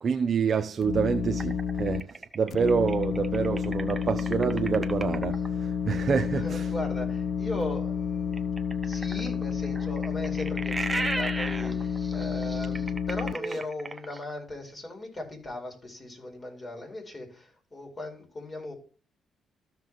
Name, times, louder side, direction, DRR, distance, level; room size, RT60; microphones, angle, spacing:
voice 1, 0.0-6.7 13.4-13.6, right 6 dB, 45° right, 0.6 m, -27 dB
sound 1, 0.8-2.0 2.5-13.3, left 7 dB, 55° left, 0.5 m, -30 dB
sound 2, 1.4-5.5 8.3-14.4, right 2 dB, 10° right, 0.9 m, -35 dB
voice 2, 6.4-18.7, left 1 dB, 30° left, 4.4 m, -38 dB
14.0 x 6.0 x 3.0 m
cardioid pair, 90°, 0 cm